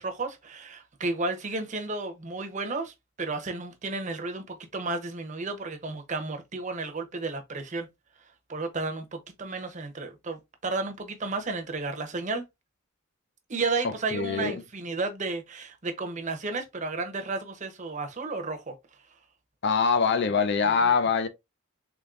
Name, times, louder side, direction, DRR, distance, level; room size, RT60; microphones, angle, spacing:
voice 1, 0.0-7.9 8.5-12.4 13.5-18.7 20.6-20.9, right 3 dB, 35° right, 0.7 m, -33 dB
voice 2, 13.8-14.6 19.6-21.3, left 5 dB, 50° left, 0.5 m, -24 dB
3.6 x 3.5 x 2.4 m
head